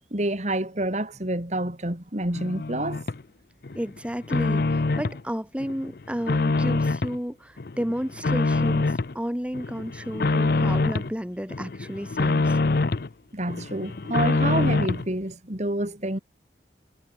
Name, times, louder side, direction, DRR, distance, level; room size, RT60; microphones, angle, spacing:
voice 1, 0.1-3.0 13.3-16.2, right 1 dB, 40° right, 3.5 m, -28 dB
sound 1, 2.4-3.2 3.6-5.2 5.6-7.2 7.6-9.1 9.5-11.1 11.5-13.1 13.5-15.1, left 3 dB, 60° left, 0.7 m, -25 dB
voice 2, 3.7-12.6, equal, 5° right, 1.5 m, -32 dB
head